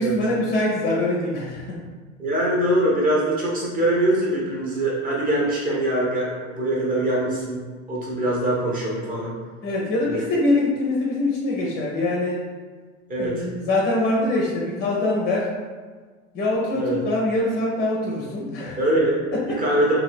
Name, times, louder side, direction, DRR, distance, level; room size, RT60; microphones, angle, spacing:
voice 1, 0.0-1.8 9.6-12.4 13.2-15.5 16.3-18.8 19.3-19.6, left 2 dB, 25° left, -3 dB, 0.5 m, -23 dB
voice 2, 2.2-7.6 7.9-9.4 10.0-10.2 13.1-13.5 16.7-17.0 18.8-20.0, right 1 dB, 20° right, -5 dB, 1.0 m, -23 dB
2.7 x 2.3 x 3.5 m, 1.5 s
figure-of-eight pair, 80°, 40 cm